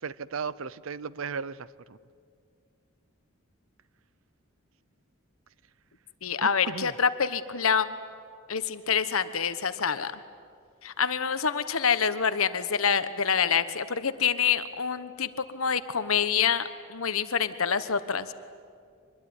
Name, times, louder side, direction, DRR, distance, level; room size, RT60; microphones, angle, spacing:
voice 1, 0.0-2.0 6.4-6.9, right 5 dB, 70° right, 18 dB, 0.6 m, -36 dB
voice 2, 6.2-8.0 8.5-10.1 10.8-16.6 16.9-18.3, left 7 dB, 80° left, 12 dB, 1.2 m, -26 dB
25.0 x 21.5 x 9.6 m, 2.3 s
head